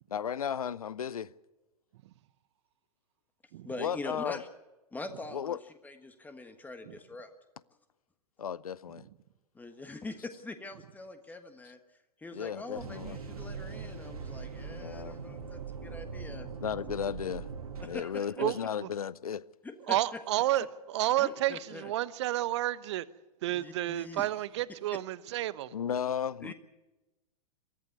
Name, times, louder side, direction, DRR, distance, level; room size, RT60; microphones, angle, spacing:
voice 1, 0.1-1.3 3.8-4.4 5.3-5.6 8.4-9.0 12.3-13.2 14.7-15.2 16.6-17.5 17.8-19.5 25.7-26.5, left 8 dB, 65° left, 0.7 m, -34 dB
voice 2, 3.6-4.5 4.9-5.6 5.8-7.3 9.5-11.8 12.2-16.5 17.8-18.3 19.6-20.2 21.2-21.9 23.5-24.3 24.9-25.0 26.4-26.5, left 2 dB, 10° left, 1.4 m, -43 dB
sound 1, 12.7-17.9, right 5 dB, 65° right, 2.8 m, -41 dB
voice 3, 18.4-18.9 19.9-23.1 23.4-25.7, right 14 dB, 45° right, 0.9 m, -31 dB
23.0 x 15.0 x 9.5 m
figure-of-eight pair, 105°, 20 cm